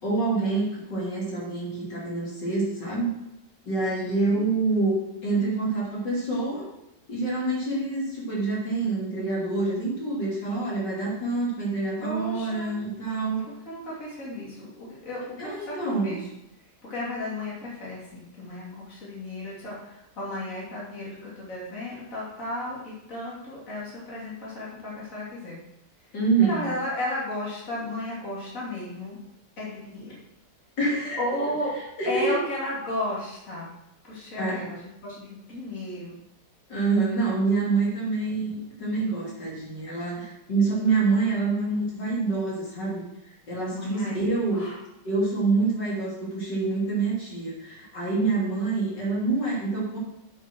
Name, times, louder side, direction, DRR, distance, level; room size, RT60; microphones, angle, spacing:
voice 1, 0.0-3.1 3.7-6.7 7.1-13.4 15.4-16.2 26.1-26.7 30.8-31.2 32.0-32.4 34.4-34.7 36.7-43.0 43.5-44.7 45.1-50.0, right 3 dB, 75° left, -6 dB, 3.8 m, -26 dB
voice 2, 4.0-4.4 12.0-12.7 13.7-16.3 16.8-25.6 26.0-26.1 26.4-29.2 29.6-30.2 31.2-31.7 32.1-33.7 34.1-36.1 43.7-44.2 44.5-44.8, left 1 dB, 45° left, -6 dB, 3.5 m, -34 dB
8.9 x 7.2 x 6.2 m, 0.86 s
omnidirectional pair, 1.9 m